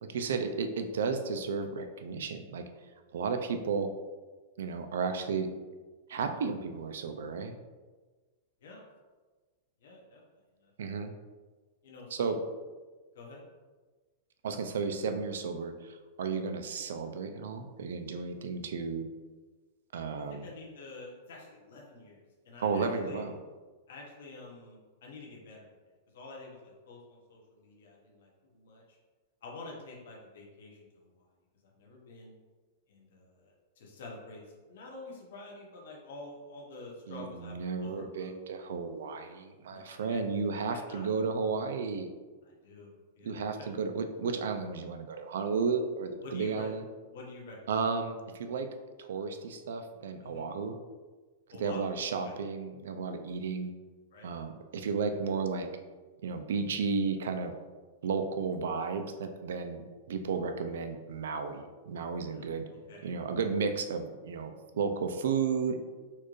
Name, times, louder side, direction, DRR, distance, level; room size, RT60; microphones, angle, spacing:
voice 1, 0.0-2.6 3.1-3.9 4.6-5.5 6.1-7.6 10.8-11.1 12.1-12.4 14.4-19.0 19.9-20.5 22.6-23.4 37.1-42.1 43.2-46.8 47.7-48.7 49.0-50.8 51.5-53.7 54.2-55.7 56.2-57.5 58.0-59.8 60.1-62.7 63.0-65.8, right 5 dB, 80° right, 7 dB, 0.4 m, -33 dB
voice 2, 9.8-10.2 10.6-10.9 11.8-12.4 13.1-13.4 20.3-23.2 23.9-25.7 26.1-28.8 29.4-31.1 31.8-32.3 32.9-38.3 39.7-40.2 40.5-41.1 42.4-43.7 46.2-46.7 47.1-47.6 50.2-50.4 51.5-51.8 52.2-52.4 54.1-54.3 62.3-62.4 62.9-63.1, left 2 dB, 65° left, -2 dB, 0.9 m, -48 dB
4.3 x 2.4 x 3.1 m, 1.3 s
supercardioid pair, 180°, 0 cm